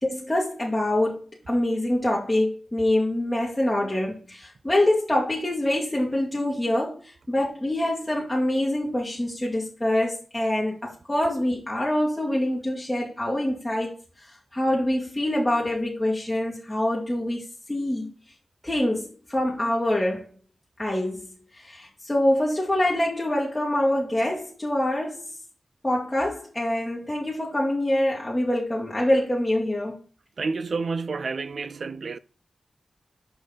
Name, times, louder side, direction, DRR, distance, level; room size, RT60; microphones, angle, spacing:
voice 1, 0.0-1.2 1.5-6.9 7.3-13.9 14.5-18.1 18.6-20.2 20.8-21.3 21.5-25.3 25.8-30.0, left 1 dB, 15° left, 1.6 m, -25 dB
voice 2, 30.4-32.2, right 4 dB, 65° right, 0.4 m, -29 dB
5.9 x 5.1 x 3.8 m
wide cardioid pair, 85°, 0 cm